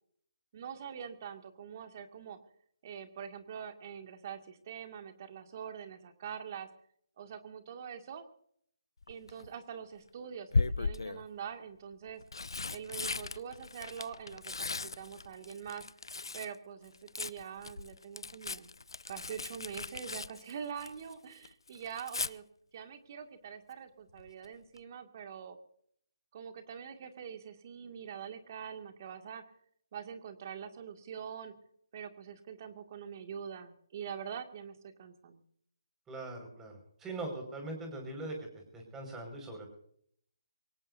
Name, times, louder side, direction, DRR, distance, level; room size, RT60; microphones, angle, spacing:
voice 1, 0.5-2.4 2.8-6.7 7.2-8.2 9.1-12.2 12.7-15.8 16.3-18.7 19.1-22.4 22.7-25.6 26.3-29.4 29.9-31.5 31.9-35.4, right 7 dB, 40° right, 6 dB, 2.2 m, -44 dB
Tearing, 9.0-9.5 10.5-11.3 12.0-16.5 16.8-21.1 21.4-22.3 24.2-24.5 24.8-24.9, left 3 dB, 80° left, 0.6 m, -37 dB
voice 2, 36.1-39.8, right 2 dB, 10° right, 2 dB, 5.4 m, -42 dB
24.5 x 18.5 x 2.7 m, 0.65 s
figure-of-eight pair, 150°, 2 cm